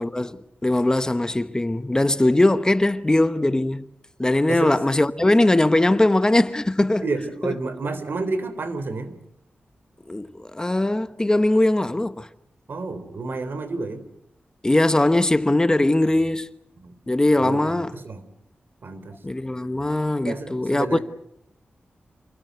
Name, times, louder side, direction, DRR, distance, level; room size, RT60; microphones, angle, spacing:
voice 1, 0.0-3.8 4.2-7.1 7.4-7.5 10.1-12.3 14.6-16.5 17.1-17.9 19.2-21.0, left 1 dB, 20° left, 1.1 m, -20 dB
voice 2, 7.0-9.2 12.7-14.0 16.8-16.9 17.4-18.2 18.8-19.1 20.2-21.0, right 3 dB, 65° right, 3.6 m, -30 dB
28.0 x 20.5 x 8.1 m
wide cardioid pair, 90°, 4 cm